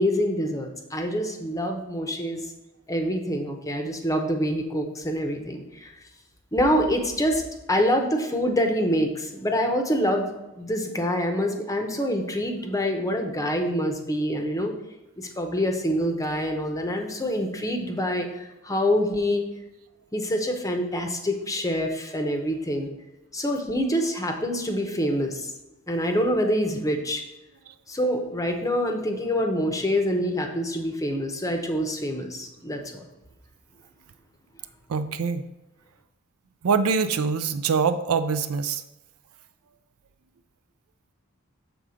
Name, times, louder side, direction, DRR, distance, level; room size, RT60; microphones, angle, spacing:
voice 1, 0.0-2.4 2.9-5.9 6.5-7.4 7.7-14.7 15.2-19.4 20.1-22.9 23.3-25.5 25.9-27.2 27.9-33.1, equal, 15° left, 4 dB, 0.7 m, -26 dB
voice 2, 34.9-35.4 36.6-38.8, right 5 dB, 75° right, 9 dB, 0.4 m, -24 dB
7.0 x 3.6 x 5.0 m, 0.97 s
head